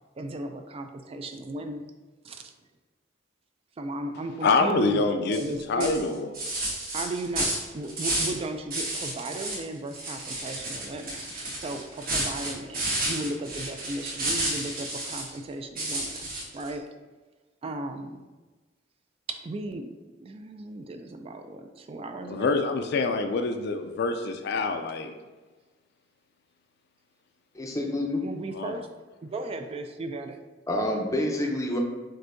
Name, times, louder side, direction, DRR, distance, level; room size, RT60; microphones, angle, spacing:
voice 1, 0.2-1.8 2.2-2.5 3.8-5.9 6.9-16.9 17.6-18.2 19.3-19.9 20.2-22.5 28.2-30.4 30.8-31.1, right 2 dB, 30° right, 6 dB, 0.3 m, -36 dB
voice 2, 4.4-5.4 5.7-6.3 22.3-25.1 28.5-28.8, left 3 dB, 60° left, 7 dB, 0.4 m, -26 dB
sound 1, 5.3-5.5 5.8-8.4 8.7-9.6 9.9-15.3 15.8-16.7, right 2 dB, 50° right, 1.2 m, -31 dB
voice 3, 27.5-28.2 30.7-31.8, left 1 dB, 15° left, 2 dB, 0.6 m, -27 dB
7.6 x 2.7 x 2.6 m, 1.2 s
head